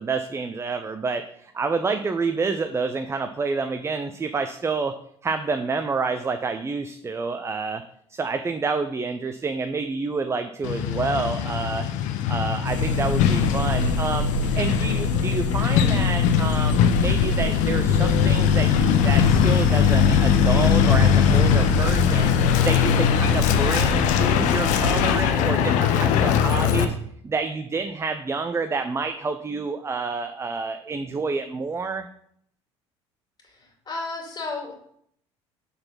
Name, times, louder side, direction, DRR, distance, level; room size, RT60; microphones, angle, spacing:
voice 1, 0.0-4.9 5.2-7.8 8.1-11.9 12.3-14.3 14.5-22.3 22.6-26.9 27.2-32.1, right 4 dB, 20° right, 8 dB, 0.5 m, -28 dB
Truck, 10.6-26.8, left 8 dB, 55° left, 0.7 m, -20 dB
sound 1, 12.7-25.2, equal, 85° left, 0.6 m, -29 dB
voice 2, 33.9-34.8, left 3 dB, 25° left, 0 dB, 2.7 m, -32 dB
6.6 x 4.1 x 5.6 m, 0.66 s
figure-of-eight pair, 60°, 15 cm